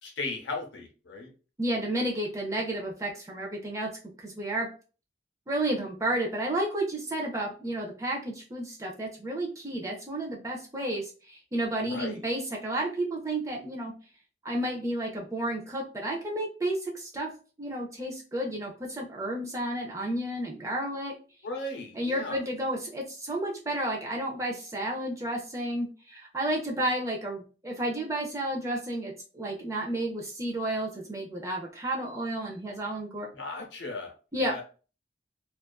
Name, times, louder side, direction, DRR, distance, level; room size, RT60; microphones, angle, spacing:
voice 1, 0.0-1.3 11.8-12.2 21.4-22.4 33.3-34.6, left 2 dB, 85° left, 3 dB, 0.7 m, -37 dB
voice 2, 1.6-3.9 4.2-4.7 5.5-13.9 14.4-17.3 17.6-21.1 22.0-33.3 34.3-34.6, right 1 dB, 15° right, -1 dB, 0.4 m, -31 dB
2.5 x 2.3 x 2.2 m, 0.36 s
head